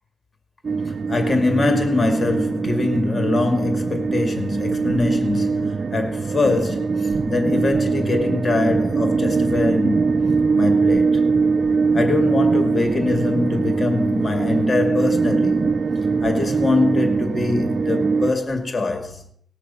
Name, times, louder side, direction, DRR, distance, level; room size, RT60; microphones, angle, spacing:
sound 1, 0.6-18.3, right 4 dB, 45° right, 0.5 m, -22 dB
voice 1, 0.8-10.2 10.5-11.2 11.9-15.8 16.2-19.2, left 2 dB, 30° left, 2.3 m, -23 dB
19.5 x 6.6 x 5.7 m
cardioid pair, 80°, 0 cm